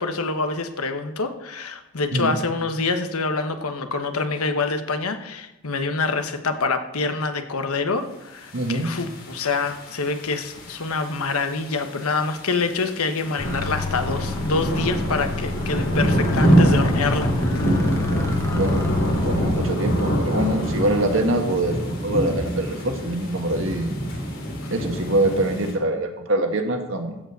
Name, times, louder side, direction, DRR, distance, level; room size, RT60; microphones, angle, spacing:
voice 1, 0.0-17.8 18.5-18.6, left 3 dB, 85° left, 7 dB, 1.1 m, -26 dB
sound 1, 8.5-25.7, equal, 60° left, 3.7 m, -25 dB
voice 2, 8.5-8.9 18.0-18.1 18.5-18.8 19.2-23.9 24.7-27.2, right 1 dB, 60° right, 4 dB, 1.6 m, -24 dB
sound 2, 13.4-19.6, left 3 dB, 10° left, 1.1 m, -29 dB
14.5 x 5.1 x 8.1 m, 0.94 s
head